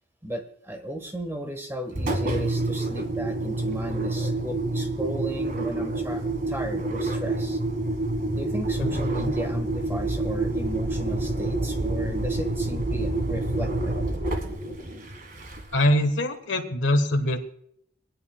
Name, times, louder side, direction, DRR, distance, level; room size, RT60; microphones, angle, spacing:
voice 1, 0.2-7.6 8.3-14.0, equal, 15° right, 5 dB, 1.3 m, -35 dB
Engine, 1.9-15.9, right 2 dB, 50° right, 1.6 m, -28 dB
voice 2, 15.7-17.5, left 1 dB, 85° left, 4 dB, 1.3 m, -23 dB
25.5 x 9.6 x 2.3 m, 0.68 s
head